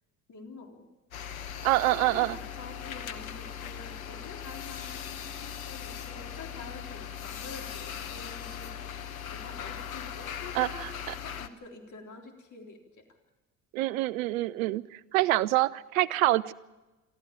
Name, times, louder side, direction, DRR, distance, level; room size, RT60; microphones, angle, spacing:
voice 1, 0.3-0.9 1.9-10.9 11.2-13.0, left 3 dB, 45° left, 2 dB, 3.7 m, -47 dB
sound 1, 1.1-11.5, left 8 dB, 90° left, 1.0 m, -39 dB
voice 2, 1.6-2.4 10.5-10.9 13.7-16.5, right 17 dB, 80° right, 21 dB, 0.7 m, -26 dB
23.5 x 14.0 x 8.9 m, 1.1 s
hypercardioid pair, 55°, 40 cm